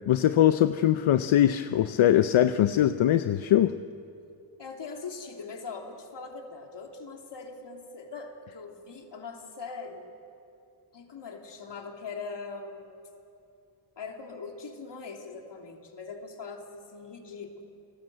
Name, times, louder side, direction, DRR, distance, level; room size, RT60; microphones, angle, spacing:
voice 1, 0.1-3.7, left 11 dB, 85° left, 11 dB, 0.8 m, -22 dB
voice 2, 4.6-10.1 10.9-13.0 14.0-17.6, left 4 dB, 60° left, 2 dB, 3.2 m, -41 dB
30.0 x 18.5 x 7.9 m, 2.7 s
cardioid pair, 85°, 47 cm